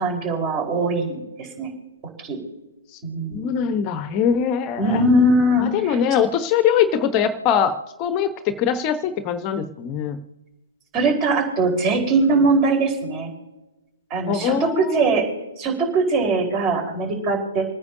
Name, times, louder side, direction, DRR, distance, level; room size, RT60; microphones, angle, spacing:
voice 1, 0.0-1.7 2.2-2.4 3.0-3.8 4.8-6.0 10.9-13.3 14.1-15.3 15.6-17.7, right 2 dB, 25° right, 2 dB, 4.5 m, -21 dB
voice 2, 3.3-5.0 5.6-10.2 14.3-15.2, left 8 dB, 30° left, 9 dB, 1.0 m, -22 dB
28.5 x 9.6 x 2.8 m, 1.0 s
figure-of-eight pair, 130°, 0 cm